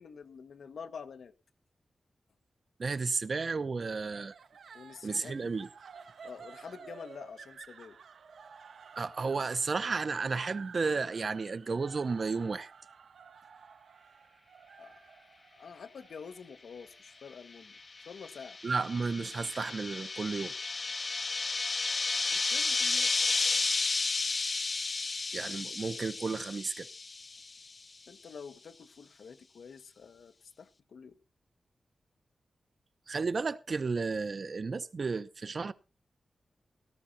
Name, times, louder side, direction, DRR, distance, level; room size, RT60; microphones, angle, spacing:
voice 1, 0.0-1.3 4.7-5.5 6.2-8.0 14.8-15.1 15.5-18.6 22.3-23.1 28.1-31.2, left 6 dB, 85° left, 1.0 m, -48 dB
voice 2, 2.8-4.3 5.0-5.7 9.0-12.7 18.6-20.5 25.3-26.9 33.1-35.7, right 4 dB, 45° right, 0.7 m, -33 dB
sound 1, 4.1-17.3, right 6 dB, 85° right, 1.2 m, -52 dB
sound 2, 17.8-27.6, left 3 dB, 40° left, 0.6 m, -32 dB
17.5 x 14.0 x 2.7 m
wide cardioid pair, 145°, 0 cm